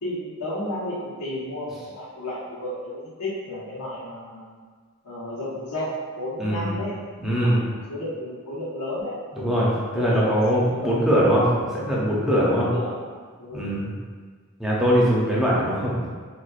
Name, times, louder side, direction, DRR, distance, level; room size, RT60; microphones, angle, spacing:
voice 1, 0.0-4.6 5.0-7.0 7.4-9.2 9.6-11.2 12.2-13.0 13.4-13.9, left 1 dB, 90° left, -9 dB, 1.2 m, -33 dB
voice 2, 7.2-7.6 9.4-11.4 11.7-12.7 13.5-13.9 14.6-16.1, equal, ahead, -6 dB, 0.6 m, -21 dB
4.2 x 2.3 x 2.4 m, 1.5 s
head